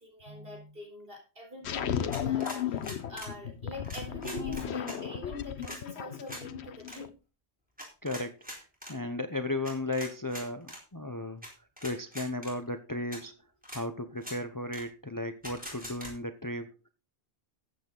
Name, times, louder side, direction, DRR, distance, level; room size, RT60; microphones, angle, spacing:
voice 1, 0.0-7.1, left 1 dB, 60° right, 2 dB, 4.1 m, -44 dB
sound 1, 1.6-7.1, left 9 dB, 85° left, 1.1 m, -35 dB
sound 2, 2.1-3.3 3.8-5.0 5.6-5.8 6.3-6.4 6.8-7.0 7.8-8.9 9.6-10.8 11.4-11.5 11.8-12.5 13.1-13.2 13.6-13.8 14.2-14.4 14.7-14.8 15.4-16.1, equal, 10° right, 4.4 m, -43 dB
voice 2, 8.0-11.4 11.8-13.4 13.7-16.8, left 2 dB, 20° left, 9 dB, 0.8 m, -35 dB
14.5 x 8.5 x 3.9 m, 0.32 s
omnidirectional pair, 1.1 m